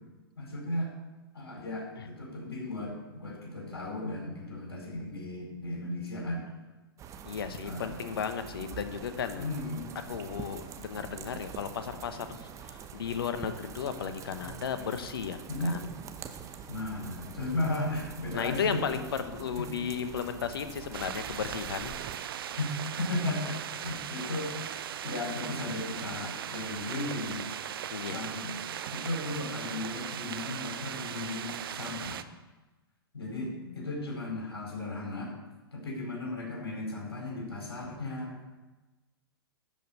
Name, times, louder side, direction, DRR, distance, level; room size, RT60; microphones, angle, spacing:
voice 1, 0.4-0.9 1.3-6.4 7.6-8.0 9.3-9.9 15.5-15.7 16.7-18.9 19.6-19.7 22.6-24.7 25.0-27.4 28.1-28.6 28.9-32.2 33.1-35.3 35.7-38.4, left 2 dB, 85° left, -1 dB, 4.7 m, -35 dB
sound 1, 7.0-22.2, right 7 dB, 25° right, 0.9 m, -45 dB
voice 2, 7.2-9.5 10.1-15.9 18.3-22.0 27.9-28.2 33.3-33.9, left 7 dB, 70° left, 9 dB, 1.1 m, -35 dB
sound 2, 20.9-32.2, right 9 dB, 65° right, 0.6 m, -38 dB
12.5 x 5.5 x 8.2 m, 1.1 s
hypercardioid pair, 115°, 13 cm